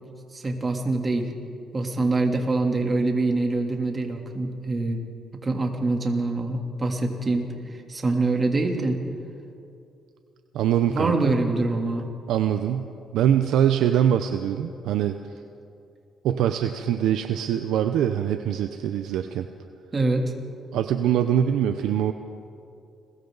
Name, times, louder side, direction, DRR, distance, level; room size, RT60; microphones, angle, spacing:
voice 1, 0.3-1.3 1.7-5.0 5.4-7.5 7.9-9.0 10.9-12.1 19.9-20.3, right 2 dB, 30° right, 1 dB, 3.1 m, -24 dB
voice 2, 10.5-11.3 12.3-15.2 16.2-19.5 20.7-22.1, right 10 dB, 85° right, 8 dB, 0.7 m, -23 dB
29.5 x 22.0 x 4.0 m, 2.5 s
cardioid pair, 90°, 0 cm